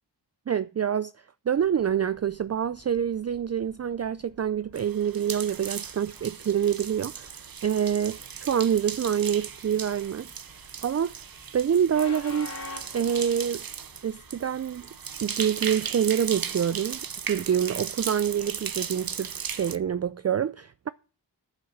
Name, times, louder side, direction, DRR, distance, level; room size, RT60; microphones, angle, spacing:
voice 1, 0.5-1.1 1.5-10.3 10.8-11.2 11.5-12.5 12.9-13.7 14.0-14.9 15.2-17.0 17.3-20.9, right 8 dB, 40° right, 0.4 m, -26 dB
Train, 1.5-20.1, left 3 dB, 50° left, 3.1 m, -50 dB
sound 1, 4.7-19.8, right 7 dB, 55° right, 0.8 m, -37 dB
9.2 x 7.5 x 6.3 m
cardioid pair, 55°, 43 cm